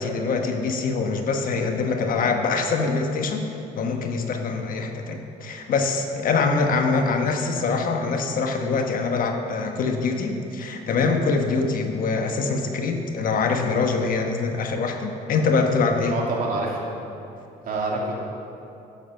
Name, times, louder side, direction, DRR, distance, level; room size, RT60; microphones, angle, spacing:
voice 1, 0.0-3.5 3.8-16.2, left 4 dB, 55° left, 4 dB, 1.1 m, -24 dB
voice 2, 16.1-16.8 17.7-18.2, right 3 dB, 55° right, -3 dB, 2.4 m, -26 dB
10.5 x 6.8 x 6.5 m, 2.7 s
cardioid pair, 110°, 17 cm